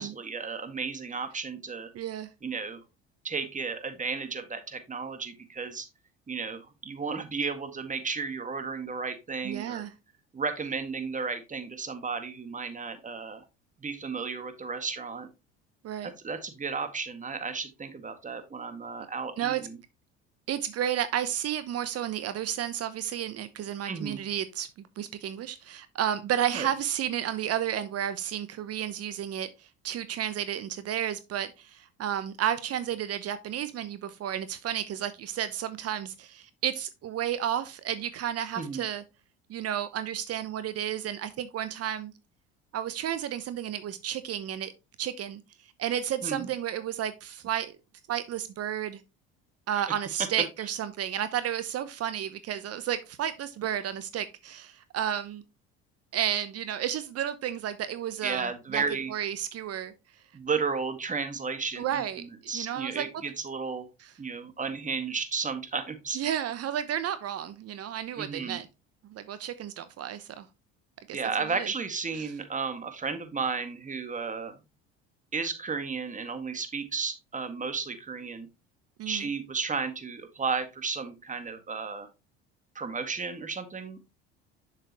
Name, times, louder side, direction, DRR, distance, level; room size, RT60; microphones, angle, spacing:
voice 1, 0.0-1.9 2.4-2.8 3.2-5.9 6.3-9.8 10.3-13.5 13.8-15.3 16.0-19.8 23.9-24.2 26.5-26.7 38.6-38.8 46.2-46.5 49.7-49.8 58.2-59.1 60.3-63.9 64.2-66.2 68.2-68.6 71.1-74.6 75.3-78.5 79.1-82.1 82.8-84.0, right 5 dB, 25° right, 1.8 m, -33 dB
voice 2, 1.9-2.3 9.4-9.9 15.8-16.1 19.4-19.6 20.5-39.0 39.5-42.1 42.7-44.7 45.0-47.8 48.1-49.0 49.7-55.4 56.1-58.8 59.1-59.9 61.8-63.0 64.0-64.1 66.1-68.7 69.0-70.5 71.1-71.2 71.5-71.7 72.2-72.3 79.0-79.3, right 10 dB, 50° right, 0.9 m, -32 dB
7.0 x 6.9 x 2.9 m
hypercardioid pair, 75°, 33 cm